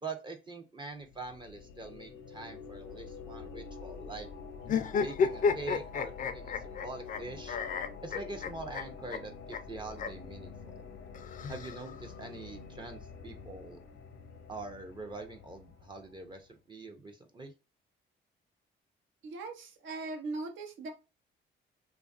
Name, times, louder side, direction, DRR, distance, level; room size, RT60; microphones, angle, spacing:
voice 1, 0.0-4.3 5.0-7.6 8.0-10.8 11.5-13.8 14.5-17.5, right 3 dB, 25° right, 4 dB, 0.5 m, -44 dB
sound 1, 1.0-16.4, left 5 dB, 85° left, 0.7 m, -47 dB
sound 2, 4.6-7.2 7.5-8.8 9.1-9.2 9.5-9.6 10.0-10.1 11.1-12.1, left 6 dB, 45° left, 0.4 m, -31 dB
voice 2, 19.2-20.9, right 3 dB, 80° right, 5 dB, 0.7 m, -39 dB
2.5 x 2.3 x 2.3 m, 0.30 s
cardioid pair, 90°, 20 cm